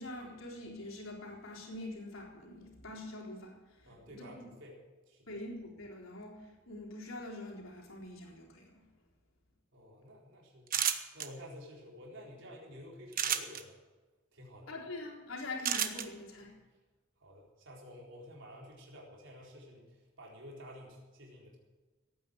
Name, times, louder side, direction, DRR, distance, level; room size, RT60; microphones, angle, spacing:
voice 1, 0.0-4.5 5.3-8.8 14.7-16.5, left 2 dB, 80° left, -1 dB, 3.9 m, -44 dB
voice 2, 3.8-4.8 5.1-5.3 9.7-10.7 11.1-13.8 14.3-14.7 16.4-16.5 17.2-21.6, equal, 65° right, -2 dB, 4.1 m, -51 dB
sound 1, 10.7-11.3 13.1-13.6 15.6-16.0, right 9 dB, 45° right, 1.2 m, -30 dB
17.5 x 9.5 x 7.8 m, 1.3 s
head